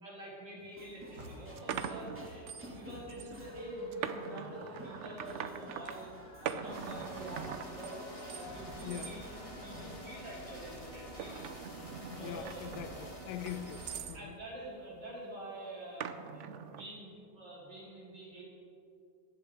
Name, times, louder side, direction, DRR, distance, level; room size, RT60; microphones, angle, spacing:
voice 1, 0.0-6.1 6.4-9.3 9.6-11.5 12.1-12.7 13.2-13.3 14.1-18.4, right 1 dB, 90° right, 4.4 m, -46 dB
sound 1, 0.6-0.7 1.2-2.8 3.1-3.4 3.9-6.0 6.5-8.5 8.8-9.1 9.6-10.0 10.7-14.2 16.0-16.9, right 8 dB, 65° right, 0.7 m, -42 dB
sound 2, 0.7-10.1, equal, 5° right, 1.9 m, -52 dB
sound 3, 6.7-14.0, equal, 20° left, 1.8 m, -47 dB
voice 2, 8.8-9.2 12.1-14.4, left 10 dB, 80° left, 1.2 m, -43 dB
14.0 x 11.5 x 4.7 m
omnidirectional pair, 1.8 m